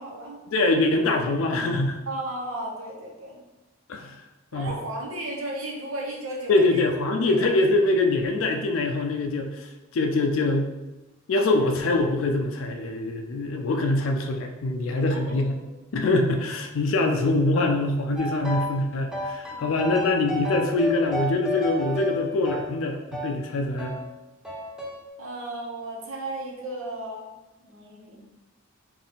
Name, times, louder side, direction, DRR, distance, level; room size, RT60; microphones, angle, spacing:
voice 1, 0.0-0.4 2.1-3.4 4.5-6.8 7.2-7.7 10.2-10.3 15.1-15.4 19.5-19.9 23.6-23.8 25.2-27.3 27.6-28.3, right 1 dB, 85° right, -1 dB, 0.9 m, -35 dB
voice 2, 0.5-2.0 3.9-4.1 4.5-4.7 6.5-10.7 11.3-15.6 15.9-23.9, left 2 dB, 75° left, 4 dB, 0.4 m, -24 dB
sound 1, 18.2-18.8 19.1-23.4 23.8-24.0 24.4-25.0, left 1 dB, 5° right, 0.6 m, -32 dB
3.7 x 2.5 x 3.8 m, 1.1 s
head